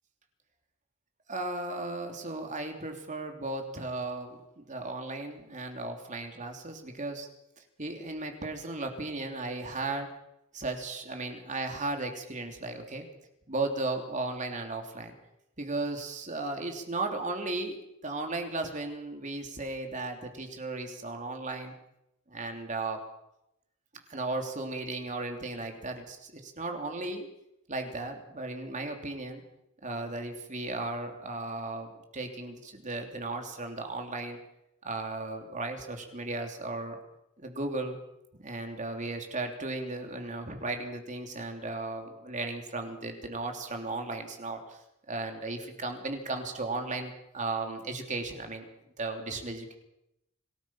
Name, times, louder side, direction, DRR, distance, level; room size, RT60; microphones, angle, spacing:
voice 1, 1.3-7.3 7.8-10.1 10.5-13.1 13.5-15.1 15.6-17.8 18.0-21.7 22.3-23.0 24.1-27.3 27.7-29.4 29.8-34.4 34.8-37.0 37.4-38.0 38.4-44.8 45.1-48.7 49.0-49.7, right 2 dB, 35° right, 4 dB, 3.1 m, -35 dB
26.5 x 18.5 x 5.8 m, 0.83 s
head